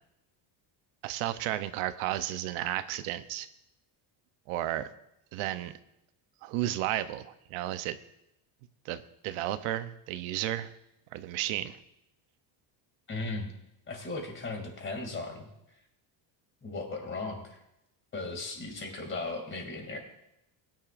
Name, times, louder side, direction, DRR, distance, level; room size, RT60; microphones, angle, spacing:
voice 1, 1.0-3.5 4.5-4.9 5.3-5.7 6.4-8.0 8.8-10.7 11.1-11.8, right 13 dB, 90° right, 11 dB, 0.9 m, -33 dB
voice 2, 13.1-13.5 13.9-15.5 16.6-17.6 18.1-20.0, left 3 dB, 25° left, 3 dB, 2.6 m, -37 dB
20.5 x 10.5 x 2.6 m, 0.84 s
cardioid pair, 155°, 49 cm